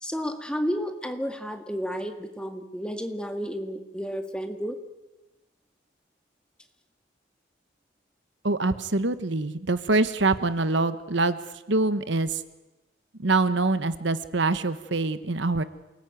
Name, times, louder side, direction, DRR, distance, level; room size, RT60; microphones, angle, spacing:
voice 1, 0.0-4.8, equal, 5° left, 6 dB, 1.8 m, -31 dB
voice 2, 8.4-11.4 11.7-12.4 13.2-15.6, right 3 dB, 60° right, 12 dB, 1.1 m, -24 dB
28.0 x 19.0 x 9.3 m, 1.1 s
head